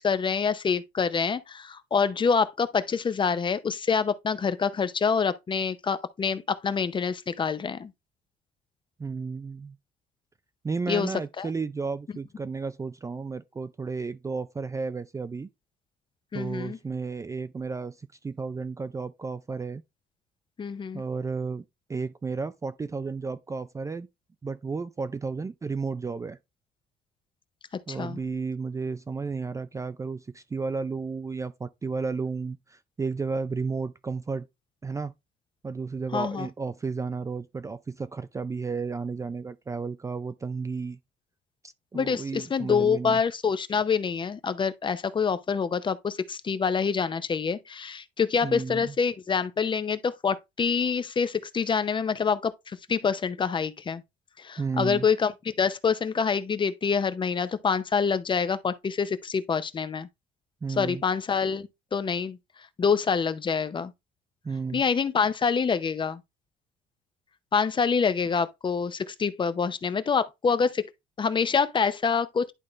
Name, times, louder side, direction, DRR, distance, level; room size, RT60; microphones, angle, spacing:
voice 1, 0.0-7.9 10.9-11.1 11.4-11.5 16.3-16.8 20.6-21.0 27.9-28.2 36.1-36.5 41.9-54.0 54.4-60.1 60.8-62.4 62.8-63.9 64.7-66.2 67.5-70.9 71.2-72.5, left 6 dB, 30° left, 0.7 m, -26 dB
voice 2, 9.0-9.8 10.6-15.5 16.3-19.8 20.9-21.6 21.9-24.1 24.4-26.4 27.9-34.5 34.8-35.1 35.6-41.0 41.6-43.2 48.4-48.9 54.6-55.1 60.6-61.0 64.4-64.8, right 4 dB, 20° right, 0.4 m, -33 dB
11.0 x 3.7 x 3.1 m
cardioid pair, 110°, 17 cm